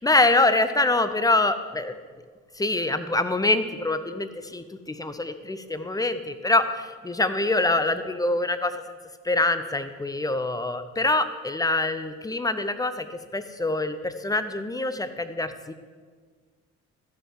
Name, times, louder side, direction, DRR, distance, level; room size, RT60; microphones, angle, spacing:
voice 1, 0.0-1.9 2.5-9.0 9.2-15.7, left 2 dB, 10° left, 11 dB, 0.7 m, -25 dB
14.0 x 6.3 x 4.7 m, 1.5 s
cardioid pair, 90°, 30 cm